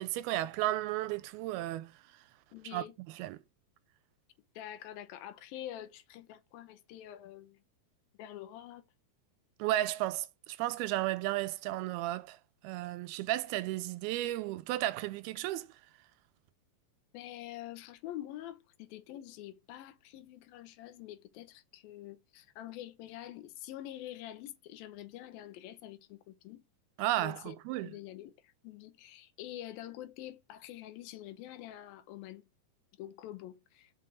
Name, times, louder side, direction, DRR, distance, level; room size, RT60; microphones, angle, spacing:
voice 1, 0.0-1.9 2.7-2.8 3.2-3.4 9.6-12.4 12.6-15.7 27.0-27.9, right 15 dB, 90° right, 2.6 m, -33 dB
voice 2, 2.5-3.0 4.6-7.6 8.2-8.9 17.1-26.6 27.2-27.6 27.8-28.3 28.6-32.5 33.0-33.9, left 13 dB, 80° left, 2.5 m, -46 dB
5.8 x 5.3 x 6.2 m
omnidirectional pair, 4.4 m